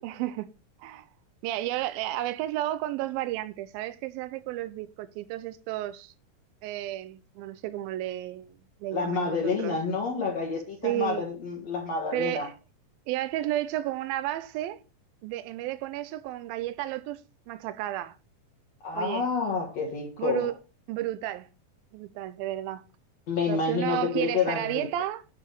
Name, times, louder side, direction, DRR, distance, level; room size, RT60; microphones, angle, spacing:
voice 1, 0.0-0.5 0.8-1.1 1.4-6.1 6.6-8.5 8.8-9.7 10.8-11.3 12.1-12.5 13.1-14.8 15.2-17.2 17.5-18.2 18.9-19.3 20.2-20.5 20.9-21.5 21.9-22.8 23.5-25.2, right 14 dB, 85° right, 2.5 m, -32 dB
voice 2, 8.9-12.5 18.8-20.5 23.3-24.9, left 5 dB, 55° left, 2.3 m, -29 dB
8.6 x 4.9 x 6.5 m
omnidirectional pair, 4.1 m